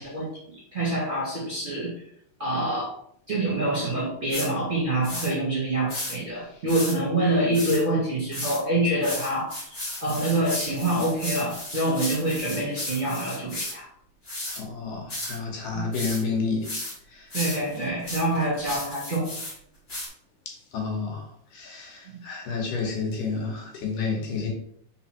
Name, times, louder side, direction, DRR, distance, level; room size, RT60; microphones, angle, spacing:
voice 1, 0.0-1.9 2.4-2.9 3.3-13.9 15.7-15.9 17.3-19.3 22.1-22.2, right 1 dB, 30° right, 1.5 m, -26 dB
sound 1, 4.3-4.5 5.0-5.3 5.9-6.1 6.7-7.0 7.5-7.8 8.3-8.6 9.0-13.7 14.2-14.6 15.1-15.4 15.9-16.2 16.6-16.9 17.3-19.5 19.9-20.1, left 1 dB, 25° left, 1.5 m, -34 dB
voice 2, 14.6-16.7 17.1-17.3 20.7-24.5, left 4 dB, 75° left, 3.0 m, -30 dB
5.6 x 4.3 x 4.4 m
omnidirectional pair, 3.8 m